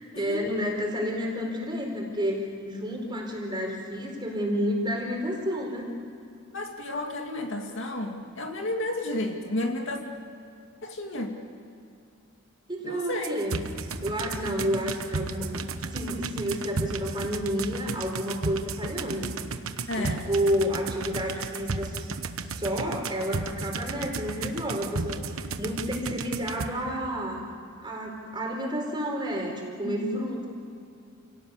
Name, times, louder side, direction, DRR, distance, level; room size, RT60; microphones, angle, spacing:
voice 1, 0.1-5.9 12.7-13.6 14.0-15.6 15.9-19.3 19.9-22.0 22.5-27.4 27.8-30.5, equal, 20° right, 0 dB, 4.6 m, -30 dB
voice 2, 6.5-10.0 10.8-11.3 12.8-13.4 19.9-20.3 29.8-30.2, left 1 dB, 60° left, 2 dB, 2.4 m, -32 dB
sound 1, 13.2-26.7, right 3 dB, 75° right, 1.1 m, -34 dB
29.5 x 18.0 x 8.3 m, 2.5 s
head